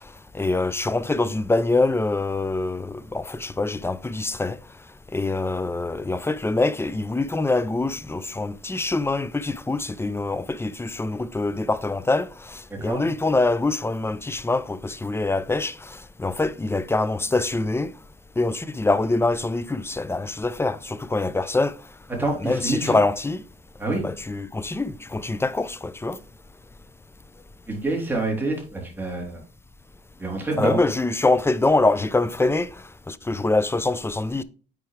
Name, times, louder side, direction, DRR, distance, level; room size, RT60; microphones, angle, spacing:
voice 1, 0.3-4.6 5.1-15.7 16.2-17.9 18.4-21.7 22.4-23.4 23.9-26.2 30.6-32.7 33.1-34.4, left 2 dB, 10° left, 0.5 m, -24 dB
voice 2, 22.2-23.0 23.8-24.0 27.7-29.4 30.2-30.8, right 2 dB, 10° right, 3.3 m, -27 dB
8.4 x 4.7 x 3.3 m
cardioid pair, 90°, 20 cm